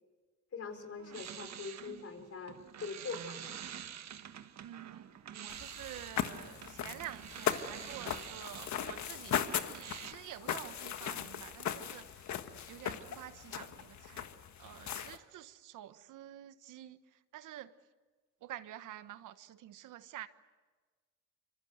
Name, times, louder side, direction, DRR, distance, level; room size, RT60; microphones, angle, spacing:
voice 1, 0.5-3.6, left 5 dB, 50° left, 4.6 m, -43 dB
sound 1, 0.7-10.1, right 9 dB, 60° right, 1.5 m, -47 dB
voice 2, 4.6-14.3 14.6-17.7 18.4-20.3, right 12 dB, 85° right, 1.2 m, -49 dB
sound 2, 5.5-15.2, left 9 dB, 65° left, 1.6 m, -39 dB
26.0 x 25.0 x 8.1 m
cardioid pair, 90°, 30 cm